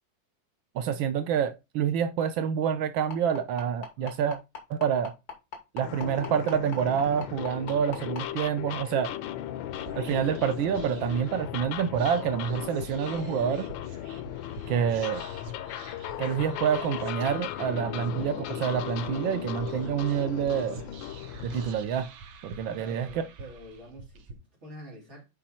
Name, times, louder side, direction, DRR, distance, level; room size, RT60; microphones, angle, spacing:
voice 1, 0.7-4.4 4.7-5.1 5.7-9.1 10.0-13.7 14.7-15.2 16.2-20.8 21.4-22.1 22.4-23.1, right 8 dB, 85° right, 1.5 m, -27 dB
sound 1, 3.1-8.2 9.2-9.3 9.7-9.8 10.3-10.4, left 6 dB, 55° left, 2.9 m, -38 dB
sound 2, 5.8-21.7, left 12 dB, 85° left, 1.4 m, -37 dB
Whispering, 9.7-24.3, right 3 dB, 65° right, 1.5 m, -47 dB
voice 2, 22.7-25.3, right 1 dB, 35° right, 3.1 m, -47 dB
7.6 x 5.0 x 4.3 m
omnidirectional pair, 2.1 m